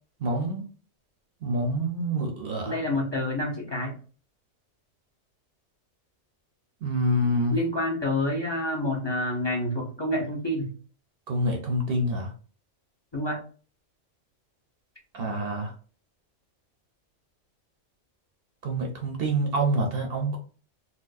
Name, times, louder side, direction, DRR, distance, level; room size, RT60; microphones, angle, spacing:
voice 1, 0.2-0.6 1.4-2.8 6.8-7.6 11.3-12.3 15.1-15.7 18.6-20.4, right 1 dB, 55° right, 2 dB, 0.8 m, -26 dB
voice 2, 2.7-4.0 7.5-10.7 13.1-13.4, left 1 dB, 25° left, -1 dB, 0.7 m, -28 dB
4.2 x 2.1 x 2.5 m, 0.39 s
omnidirectional pair, 1.3 m